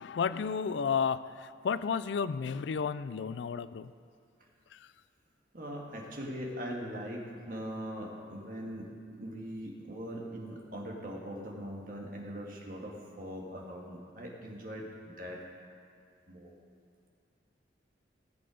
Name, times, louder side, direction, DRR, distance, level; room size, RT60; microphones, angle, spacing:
voice 1, 0.0-3.9 4.7-4.8, left 6 dB, 75° left, 15 dB, 0.4 m, -32 dB
voice 2, 5.5-15.4 16.3-16.5, equal, 45° right, -1 dB, 1.8 m, -41 dB
17.5 x 7.8 x 5.1 m, 2.2 s
head